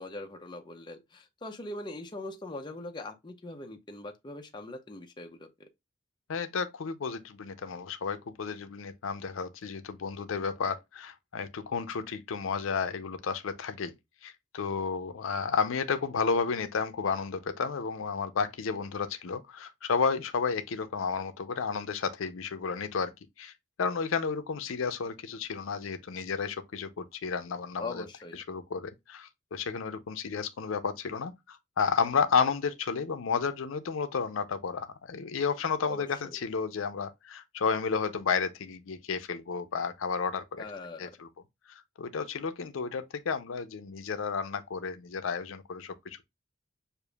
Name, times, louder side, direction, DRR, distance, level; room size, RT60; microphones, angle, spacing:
voice 1, 0.0-5.7 27.8-28.4 35.9-36.4 40.6-41.2, left 2 dB, 20° left, 0.5 m, -41 dB
voice 2, 6.3-13.9 14.2-23.1 23.4-23.5 23.8-28.0 28.5-40.6 41.0-41.3 41.7-46.3, left 5 dB, 80° left, 0.5 m, -32 dB
6.6 x 2.5 x 2.2 m
head